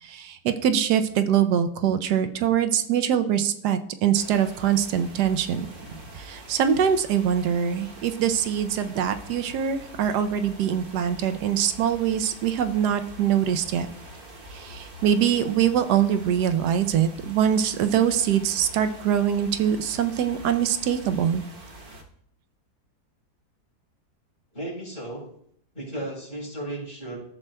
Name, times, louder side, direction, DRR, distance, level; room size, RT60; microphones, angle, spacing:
voice 1, 0.0-5.7 6.1-13.9 14.5-21.4, right 9 dB, 80° right, 9 dB, 1.2 m, -23 dB
sound 1, 4.1-22.0, right 1 dB, 40° right, 1.0 m, -44 dB
voice 2, 24.5-25.3 25.7-27.2, right 1 dB, 30° left, -4 dB, 4.0 m, -34 dB
14.0 x 7.3 x 2.2 m, 0.67 s
omnidirectional pair, 1.8 m